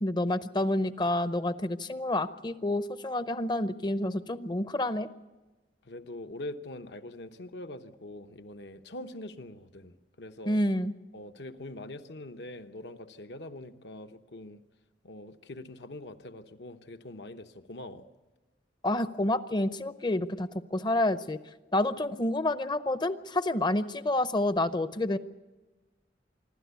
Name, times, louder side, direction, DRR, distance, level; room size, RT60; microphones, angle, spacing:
voice 1, 0.0-5.1 10.5-10.9 18.8-21.4 21.7-25.2, left 1 dB, 25° left, 13 dB, 0.7 m, -29 dB
voice 2, 5.8-10.6 11.1-14.6 15.0-18.1, left 1 dB, 70° left, 8 dB, 1.0 m, -43 dB
26.0 x 12.5 x 8.2 m, 1.2 s
head